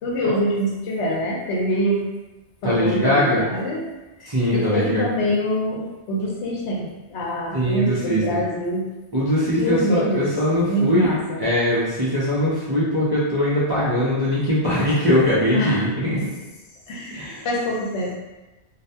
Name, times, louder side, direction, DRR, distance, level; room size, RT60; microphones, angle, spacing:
voice 1, 0.0-2.1 2.6-3.9 4.2-8.9 9.6-10.3 10.7-11.4 15.5-15.8 16.9-18.1, equal, 90° left, -3 dB, 0.9 m, -25 dB
voice 2, 2.6-3.5 4.2-5.3 7.5-8.4 9.1-11.1 11.4-16.2 17.1-17.5, equal, 35° right, -10 dB, 0.4 m, -21 dB
2.4 x 2.2 x 2.7 m, 1.1 s
omnidirectional pair, 1.2 m